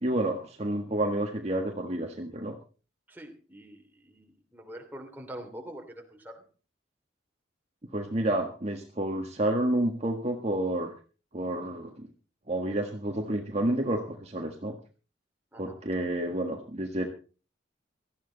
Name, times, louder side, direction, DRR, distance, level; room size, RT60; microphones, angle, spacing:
voice 1, 0.0-2.6 7.9-10.9 11.3-12.1 12.5-14.7 15.6-17.1, right 1 dB, 35° right, 2 dB, 1.6 m, -29 dB
voice 2, 3.1-6.5 15.5-15.8, right 1 dB, 10° right, 2 dB, 3.1 m, -45 dB
18.0 x 13.5 x 4.0 m, 0.36 s
head